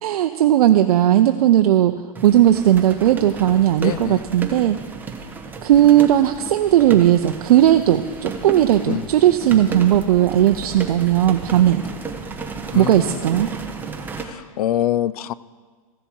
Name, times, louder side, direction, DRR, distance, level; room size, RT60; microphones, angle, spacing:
voice 1, 0.0-4.8 5.6-11.8 12.7-13.5, right 12 dB, 80° right, 7 dB, 0.5 m, -16 dB
sound 1, 2.2-14.3, right 4 dB, 10° right, 0.7 m, -33 dB
voice 2, 3.8-4.2 8.8-9.1 12.7-13.2 14.2-15.3, left 12 dB, 80° left, 19 dB, 0.4 m, -25 dB
14.5 x 7.0 x 4.5 m, 1.5 s
hypercardioid pair, 145°, 19 cm